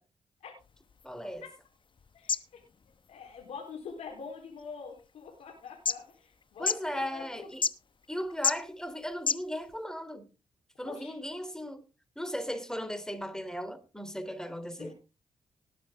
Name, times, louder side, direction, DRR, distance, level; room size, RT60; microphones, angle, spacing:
sound 1, 0.6-9.8, left 5 dB, 45° left, 0.9 m, -37 dB
voice 1, 1.0-1.4 6.6-7.6 8.1-10.2 10.8-11.8 12.1-14.9, equal, 5° left, 3.3 m, -37 dB
voice 2, 2.1-2.6 3.1-7.5 10.9-11.1 14.8-14.9, left 5 dB, 75° left, 4.0 m, -45 dB
19.0 x 7.9 x 3.8 m
supercardioid pair, 45°, 11 cm